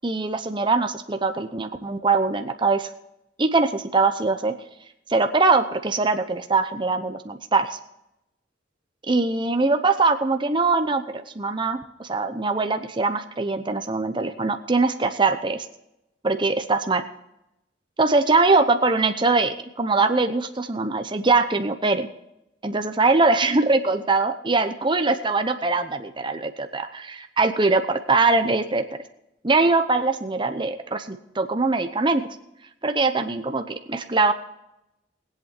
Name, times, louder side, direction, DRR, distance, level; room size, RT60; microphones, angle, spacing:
voice 1, 0.0-2.9 3.4-4.5 5.1-7.8 9.1-15.6 16.2-17.0 18.0-22.1 22.6-28.8 29.4-32.3 32.8-34.3, right 3 dB, 25° right, 7 dB, 0.8 m, -22 dB
21.0 x 8.3 x 4.5 m, 0.86 s
head